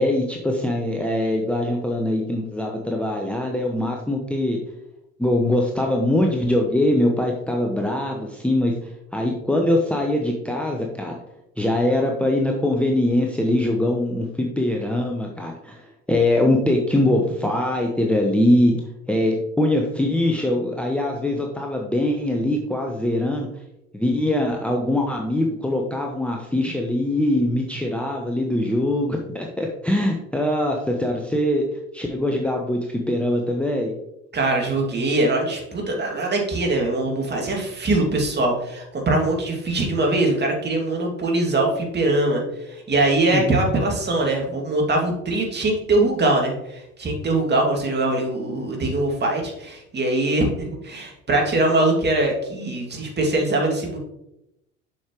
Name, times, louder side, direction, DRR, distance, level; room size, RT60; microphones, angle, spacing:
voice 1, 0.0-4.6 5.2-11.1 11.6-18.7 19.1-23.5 23.9-31.6 31.9-33.9 43.3-43.4, left 1 dB, 5° left, 1 dB, 0.9 m, -22 dB
voice 2, 34.3-54.0, right 2 dB, 25° right, 0 dB, 2.3 m, -22 dB
7.3 x 6.4 x 3.0 m, 0.85 s
hypercardioid pair, 65°, 37 cm